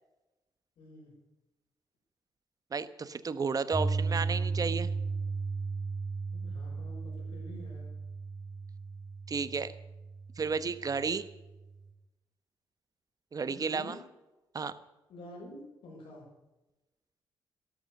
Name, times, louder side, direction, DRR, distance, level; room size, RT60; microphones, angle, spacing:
voice 1, 0.8-1.1 6.3-7.9 13.5-14.0 15.1-16.2, left 1 dB, 80° left, -3 dB, 6.2 m, -48 dB
voice 2, 2.7-4.9 9.3-9.7 10.4-11.2 13.3-14.0 14.5-14.8, right 5 dB, 45° right, 14 dB, 1.1 m, -32 dB
Piano, 3.7-11.8, right 4 dB, 5° right, 5.1 m, -35 dB
12.5 x 12.5 x 6.6 m, 1.0 s
cardioid pair, 70°, 9 cm